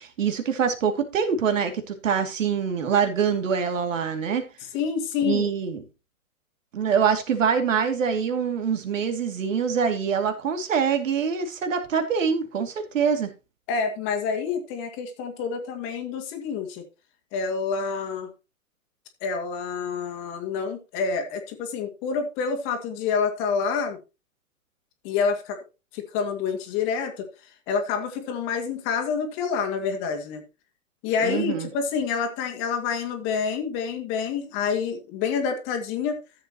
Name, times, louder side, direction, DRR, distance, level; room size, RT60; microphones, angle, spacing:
voice 1, 0.0-4.4 5.2-5.8 6.7-13.3 31.2-31.7, right 6 dB, 60° right, 2.5 m, -24 dB
voice 2, 4.7-5.5 13.7-16.8 17.3-18.3 19.2-24.0 25.0-25.6 25.9-27.3 27.7-30.4 31.0-36.2, left 6 dB, 25° left, 2.0 m, -27 dB
14.0 x 7.8 x 2.9 m
hypercardioid pair, 130°, 44 cm